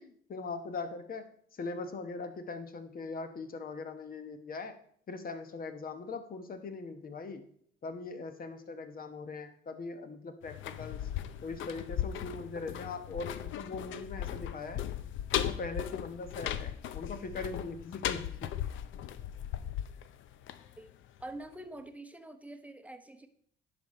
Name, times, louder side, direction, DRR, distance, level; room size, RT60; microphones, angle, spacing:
voice 1, 0.0-4.8 5.1-7.4 7.8-11.1 11.4-14.8 15.3-18.5, left 3 dB, 45° left, 8 dB, 1.1 m, -41 dB
sound 1, 10.4-21.2 21.5-21.6, left 11 dB, 75° left, 0.5 m, -37 dB
voice 2, 21.2-23.3, right 1 dB, 5° right, 7 dB, 0.8 m, -45 dB
10.0 x 5.3 x 4.2 m, 0.63 s
cardioid pair, 90°, 20 cm